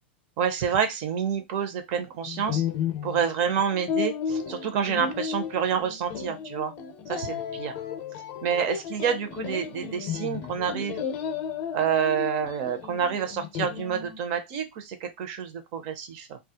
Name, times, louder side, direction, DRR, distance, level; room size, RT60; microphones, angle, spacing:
voice 1, 0.4-2.6 3.0-6.7 7.1-7.7 8.4-11.0 11.7-16.4, right 7 dB, 45° right, 7 dB, 0.6 m, -28 dB
sound 1, 2.3-14.2, left 7 dB, 40° left, 0.5 m, -33 dB
2.3 x 2.0 x 2.7 m, 0.20 s
supercardioid pair, 135°, 6 cm